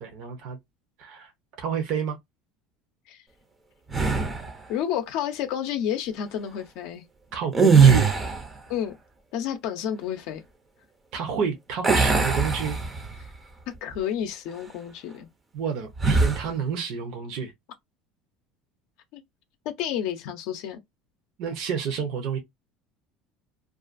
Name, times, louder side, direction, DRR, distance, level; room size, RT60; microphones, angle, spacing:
voice 1, 0.0-0.6 1.0-1.3 1.6-2.2 7.3-8.1 11.1-12.8 15.5-17.5 21.4-22.4, right 7 dB, 55° right, 0.6 m, -29 dB
sound 1, 3.9-4.6 7.5-8.6 11.8-13.3 13.7-13.9 16.0-16.5, right 5 dB, 15° right, 0.5 m, -20 dB
voice 2, 4.7-7.0 8.7-8.9 9.3-10.4 13.8-15.3 19.1-19.2 19.6-20.8, left 9 dB, 60° left, 0.5 m, -30 dB
2.4 x 2.3 x 2.4 m
cardioid pair, 160°, 0 cm